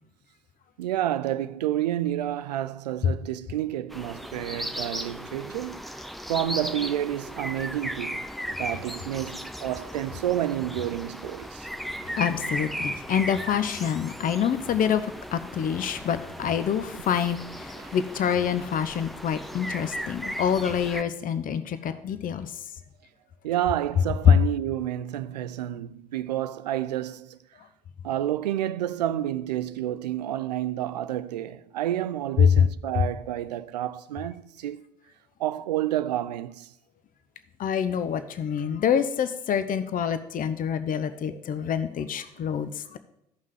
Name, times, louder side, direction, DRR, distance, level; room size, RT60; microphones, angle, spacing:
voice 1, 0.8-6.0 6.3-8.2 8.6-11.7 16.9-17.0 17.8-17.9 20.2-20.3 23.4-27.4 28.0-34.8 35.4-36.7, right 12 dB, 80° right, 0.4 m, -30 dB
sound 1, 3.9-21.0, equal, ahead, 0.6 m, -36 dB
voice 2, 11.9-22.5 32.4-32.7 37.6-43.0, left 8 dB, 40° left, 0.8 m, -26 dB
14.5 x 5.6 x 4.8 m
hypercardioid pair, 55°, 21 cm